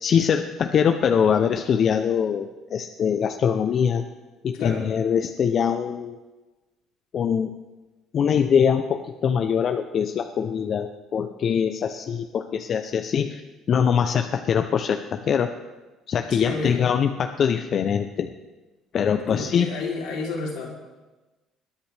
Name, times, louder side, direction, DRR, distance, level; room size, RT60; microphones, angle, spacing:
voice 1, 0.0-4.0 4.4-6.2 7.1-7.5 8.1-13.4 13.7-15.5 16.1-18.3 18.9-19.7, left 7 dB, 55° left, 6 dB, 0.7 m, -23 dB
voice 2, 4.5-4.9 16.3-16.8 19.3-20.7, left 4 dB, 85° left, -2 dB, 3.4 m, -30 dB
21.0 x 10.0 x 3.5 m, 1.2 s
supercardioid pair, 80°, 0 cm